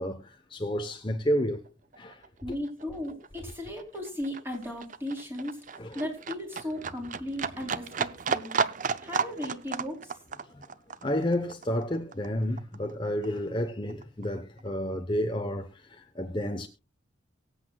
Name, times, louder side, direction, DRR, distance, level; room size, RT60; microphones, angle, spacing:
voice 1, 0.0-1.6 2.0-2.2 5.8-6.0 10.5-10.6 11.0-16.7, equal, 25° left, 0.9 m, -31 dB
Livestock farm animals working animals, 1.5-1.7 1.9-12.9 13.2-14.3 14.6-14.7, right 5 dB, 40° right, 0.6 m, -34 dB
voice 2, 2.4-8.5 9.0-10.2, left 1 dB, 10° right, 3.5 m, -36 dB
23.5 x 8.2 x 2.3 m
head